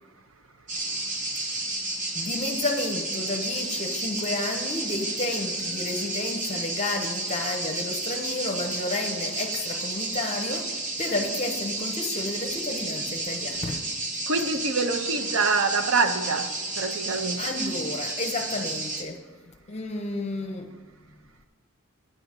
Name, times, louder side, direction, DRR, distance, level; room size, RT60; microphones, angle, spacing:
sound 1, 0.7-19.0, right 2 dB, 35° right, 0.9 m, -31 dB
voice 1, 2.1-13.8 17.4-19.2 19.7-20.8, left 2 dB, 30° left, 0.7 m, -31 dB
voice 2, 14.3-17.4, right 4 dB, 65° right, 0.6 m, -25 dB
10.0 x 3.9 x 7.2 m
head